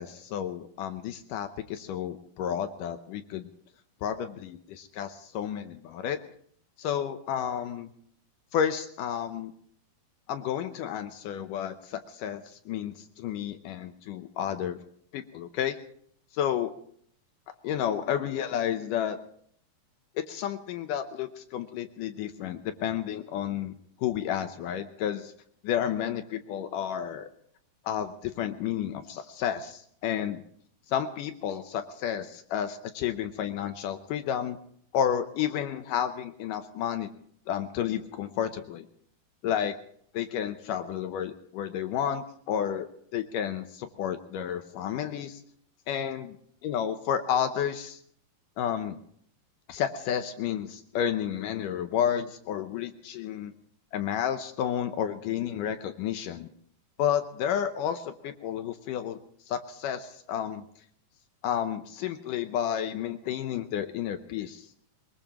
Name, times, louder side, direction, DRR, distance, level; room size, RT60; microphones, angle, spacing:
voice 1, 0.0-3.5 4.0-6.2 6.8-7.9 8.5-9.5 10.3-14.8 15.1-15.8 16.3-16.7 17.6-19.2 20.2-25.3 25.6-27.3 27.9-30.4 30.9-34.6 34.9-37.1 37.5-38.9 39.4-39.7 40.1-42.9 43.1-45.4 45.9-46.4 46.6-48.0 48.6-49.0 49.7-53.5 53.9-56.5 57.0-59.2 59.5-60.6 61.4-64.7, left 9 dB, 75° left, 8 dB, 2.1 m, -31 dB
22.5 x 21.0 x 3.0 m, 0.62 s
omnidirectional pair, 4.3 m